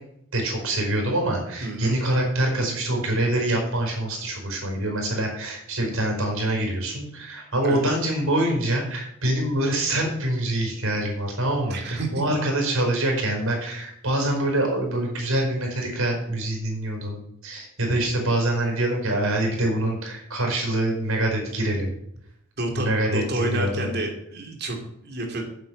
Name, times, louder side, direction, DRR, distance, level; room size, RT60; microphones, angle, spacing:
voice 1, 0.3-21.9 22.8-23.9, right 1 dB, 75° right, 1 dB, 4.9 m, -25 dB
voice 2, 1.6-2.0 7.6-7.8 11.7-12.2 22.6-25.4, right 2 dB, 50° right, 2 dB, 2.6 m, -29 dB
8.9 x 8.2 x 8.2 m, 0.76 s
head